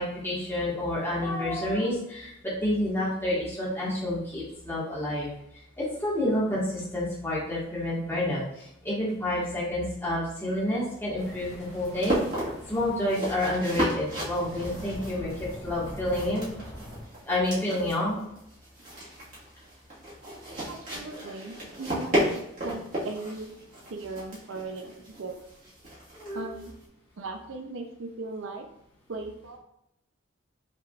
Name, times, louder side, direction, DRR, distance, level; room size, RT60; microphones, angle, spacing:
voice 1, 0.0-2.3 2.6-12.2 12.7-16.5 17.2-18.2 26.1-26.5, left 1 dB, 10° left, -7 dB, 1.5 m, -29 dB
sound 1, 10.5-26.8, equal, 45° right, 1.6 m, -35 dB
sound 2, 11.2-17.0, equal, 5° right, 1.5 m, -43 dB
voice 2, 20.7-23.5 23.9-25.3 26.3-26.7 27.2-28.7 29.1-29.6, right 3 dB, 70° right, 4 dB, 0.6 m, -38 dB
5.6 x 3.6 x 2.4 m, 0.79 s
head